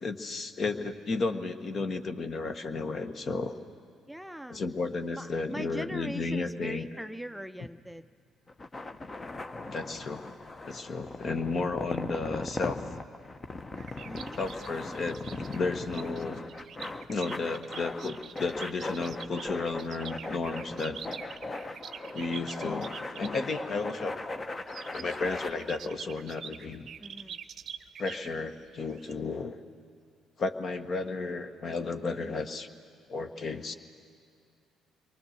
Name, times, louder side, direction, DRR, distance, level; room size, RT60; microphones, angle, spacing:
voice 1, 0.0-3.5 4.5-6.9 9.7-10.3 10.6-12.8 14.3-15.2 15.5-16.4 17.1-21.0 22.1-24.5 24.9-26.9 28.0-29.6 30.4-32.7 33.1-33.7, left 3 dB, 45° left, 8 dB, 1.4 m, -33 dB
voice 2, 4.1-4.6 5.1-8.1 14.0-14.4 27.0-27.4, right 1 dB, ahead, 9 dB, 0.5 m, -40 dB
sound 1, 8.5-25.5, left 2 dB, 30° left, 1.1 m, -39 dB
sound 2, 13.8-23.4 24.6-29.1, right 8 dB, 55° right, 0.7 m, -46 dB
28.5 x 23.5 x 6.8 m, 2.3 s
hypercardioid pair, 50°, 0 cm